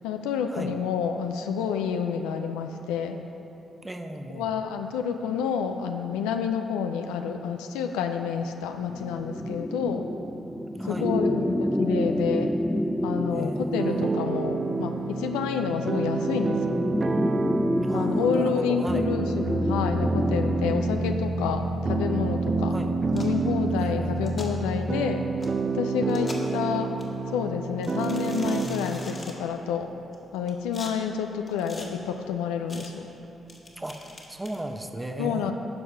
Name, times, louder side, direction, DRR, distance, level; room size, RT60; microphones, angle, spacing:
voice 1, 0.0-3.2 4.3-10.0 10.8-12.5 13.0-16.8 17.9-22.7 23.1-25.2 25.7-26.9 27.3-29.9 30.3-33.1 35.2-35.5, left 7 dB, 90° left, 6 dB, 0.4 m, -29 dB
voice 2, 3.8-4.5 10.8-11.1 13.3-14.1 17.8-19.1 22.7-23.0 23.8-24.4 33.8-35.5, right 1 dB, 20° right, 6 dB, 0.8 m, -36 dB
sound 1, 8.8-21.2, equal, 5° left, 0.5 m, -29 dB
sound 2, 13.8-28.7, right 3 dB, 50° right, 0.5 m, -28 dB
sound 3, 23.1-23.4 24.2-24.5 25.4-25.5 26.1-26.6 27.0-27.1 27.8-29.3 30.1-30.9 31.5-31.9 32.7-32.9 33.5-34.6, left 2 dB, 45° left, 1.7 m, -42 dB
11.5 x 4.7 x 5.5 m, 3.0 s
supercardioid pair, 45°, 0 cm